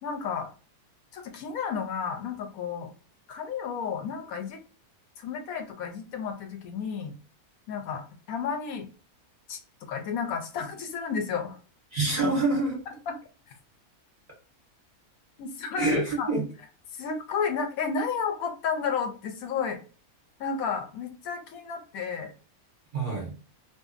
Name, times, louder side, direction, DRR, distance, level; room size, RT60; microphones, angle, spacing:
voice 1, 0.0-0.5 1.1-2.9 3.3-4.6 5.2-7.2 7.7-8.9 9.5-9.6 9.9-11.6 12.9-13.0 15.4-16.3 16.9-19.8 20.4-22.3, left 6 dB, 75° left, 5 dB, 1.0 m, -32 dB
voice 2, 11.9-12.8 15.8-16.5 22.9-23.3, right 2 dB, 40° right, -3 dB, 0.7 m, -26 dB
2.6 x 2.3 x 2.4 m, 0.36 s
omnidirectional pair, 1.6 m